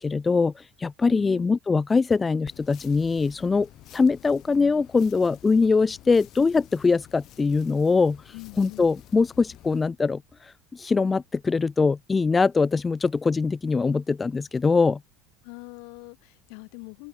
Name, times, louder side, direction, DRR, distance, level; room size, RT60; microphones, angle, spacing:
voice 1, 0.0-3.7 3.9-15.0, left 4 dB, 20° left, 0.4 m, -23 dB
voice 2, 1.1-1.5 8.3-8.9 15.4-17.1, left 40 dB or more, 75° left, 3.0 m, -43 dB
sound 1, 2.4-9.9, left 14 dB, 50° left, 6.1 m, -50 dB
open air
supercardioid pair, 125°, 0 cm